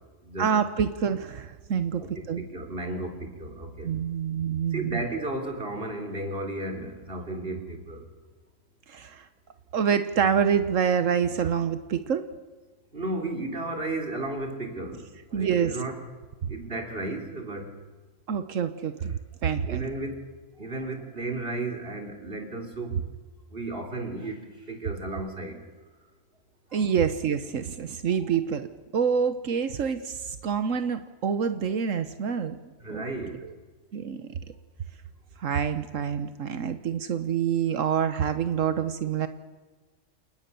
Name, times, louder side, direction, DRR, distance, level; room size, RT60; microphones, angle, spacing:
voice 1, 0.4-2.4 3.8-5.0 8.9-9.2 9.7-12.2 15.3-15.8 16.4-16.5 18.3-19.2 19.4-19.8 26.7-28.7 28.9-32.6 32.9-33.0 33.4-33.5 33.9-34.3 35.4-39.3, right 7 dB, 80° right, 10 dB, 1.4 m, -27 dB
voice 2, 2.0-3.9 4.7-8.0 12.9-15.1 15.4-16.0 16.5-17.7 19.7-20.2 20.6-22.9 23.5-24.4 24.7-25.6 26.7-26.9 32.8-33.3, right 2 dB, 45° right, 5 dB, 3.7 m, -34 dB
29.0 x 19.0 x 6.9 m, 1.3 s
omnidirectional pair, 1.3 m